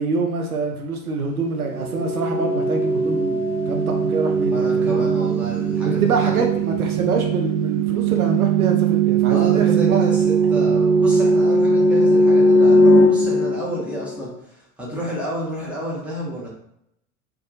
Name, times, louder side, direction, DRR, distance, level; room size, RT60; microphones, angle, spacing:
voice 1, 0.0-5.0 5.8-10.1, right 4 dB, 85° right, 2 dB, 0.5 m, -25 dB
sound 1, 1.6-14.3, right 2 dB, 45° right, 0.7 m, -19 dB
voice 2, 4.4-6.8 9.3-16.5, equal, 5° right, -6 dB, 0.7 m, -30 dB
2.3 x 2.2 x 2.6 m, 0.76 s
figure-of-eight pair, 75°, 43 cm